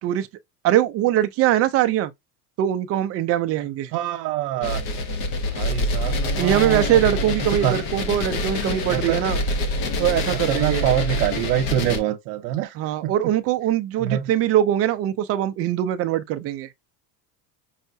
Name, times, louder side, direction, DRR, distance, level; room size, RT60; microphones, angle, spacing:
voice 1, 0.6-2.1 2.6-3.9 6.4-9.4 10.0-10.9 12.8-16.7, right 12 dB, 35° right, 0.4 m, -22 dB
voice 2, 3.9-4.8 5.5-7.0 7.6-7.8 8.9-9.4 10.5-12.8 13.0-13.3 14.0-14.3, right 12 dB, 80° right, 0.9 m, -25 dB
sound 1, 4.6-12.0, left 2 dB, 55° left, 1.0 m, -26 dB
5.5 x 2.1 x 2.6 m
supercardioid pair, 135°, 46 cm